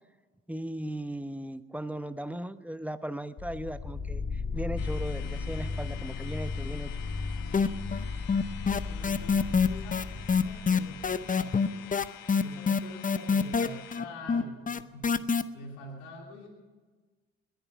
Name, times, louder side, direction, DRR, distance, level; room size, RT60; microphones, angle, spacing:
voice 1, 0.5-7.1, right 1 dB, 5° right, 12 dB, 0.9 m, -37 dB
sound 1, 3.4-11.2, left 4 dB, 50° left, 3.7 m, -36 dB
sound 2, 4.8-14.0, left 10 dB, 70° left, 1.5 m, -48 dB
sound 3, 7.5-8.0 8.3-15.4, left 5 dB, 25° left, 0.7 m, -25 dB
voice 2, 8.9-16.5, left 2 dB, 90° left, 0 dB, 3.1 m, -46 dB
21.0 x 9.5 x 6.1 m, 1.4 s
supercardioid pair, 65°, 35 cm